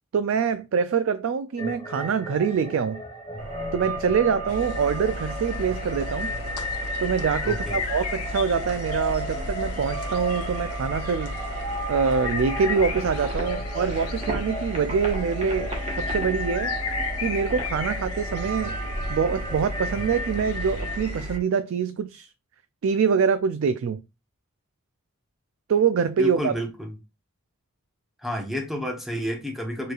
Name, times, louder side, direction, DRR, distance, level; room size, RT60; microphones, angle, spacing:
voice 1, 0.1-3.0 3.7-6.3 7.0-11.3 11.9-16.7 17.2-18.8 19.1-22.3 22.8-24.0 25.7-26.5, right 6 dB, 60° right, 0.3 m, -25 dB
sound 1, 1.6-21.0, equal, 20° left, 2.0 m, -35 dB
sound 2, 3.4-21.4, right 1 dB, 30° right, 1.2 m, -37 dB
sound 3, 4.5-21.4, left 2 dB, 90° left, 0.7 m, -34 dB
voice 2, 7.4-7.8 26.2-26.9 28.2-29.9, equal, ahead, 0.9 m, -30 dB
6.6 x 3.1 x 2.4 m
head